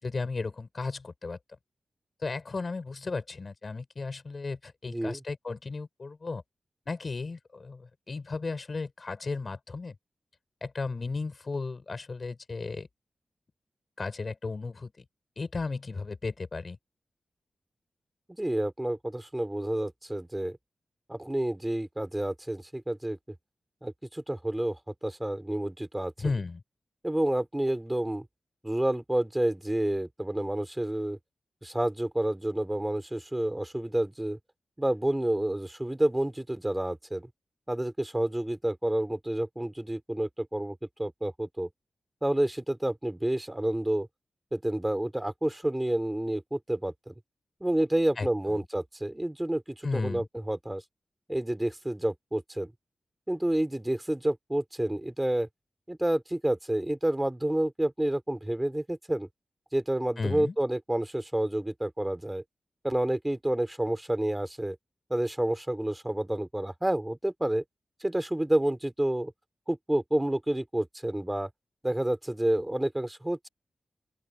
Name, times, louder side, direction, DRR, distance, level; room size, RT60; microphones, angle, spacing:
voice 1, 0.0-1.4 2.2-6.4 6.9-10.0 10.6-12.9 14.0-15.0 15.4-16.8 26.2-26.6 48.2-48.6 49.8-50.3 60.2-60.6, left 4 dB, 45° left, 7.1 m, -35 dB
voice 2, 4.9-5.2 18.3-20.6 21.1-23.2 23.8-24.8 25.0-26.1 27.0-28.3 28.6-31.2 31.6-34.4 34.8-37.3 37.7-41.7 42.2-44.1 44.5-47.1 47.6-50.8 51.3-52.7 53.3-55.5 55.9-59.3 59.7-62.4 62.8-64.8 65.1-67.6 68.0-69.3 69.7-71.5 71.8-73.5, right 1 dB, 10° right, 3.9 m, -29 dB
open air
wide cardioid pair, 80°, 0 cm